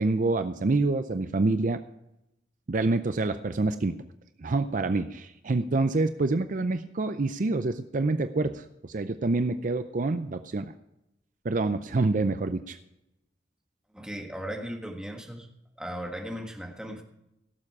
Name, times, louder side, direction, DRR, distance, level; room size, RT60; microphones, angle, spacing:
voice 1, 0.0-1.8 2.7-3.9 4.4-10.7 11.4-12.8, right 3 dB, 45° right, 10 dB, 0.5 m, -27 dB
voice 2, 13.9-15.5 15.8-17.0, equal, 5° right, 2 dB, 1.6 m, -37 dB
17.0 x 7.5 x 4.7 m, 0.86 s
head